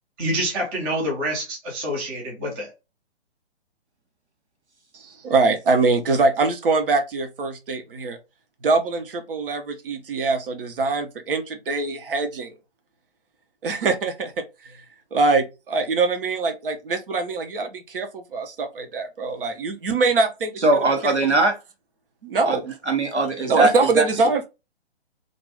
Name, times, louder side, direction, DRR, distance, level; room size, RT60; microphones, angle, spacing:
voice 1, 0.2-2.7, right 1 dB, 10° right, 0.5 m, -27 dB
voice 2, 4.9-8.2 8.6-12.5 13.6-14.7 15.1-21.3 22.2-22.6 23.5-24.5, right 3 dB, 55° right, 0.7 m, -23 dB
voice 3, 20.6-21.5 22.5-22.6 22.9-23.7 24.0-24.1, right 2 dB, 85° right, 1.1 m, -20 dB
2.5 x 2.3 x 3.3 m
figure-of-eight pair, 130°, 33 cm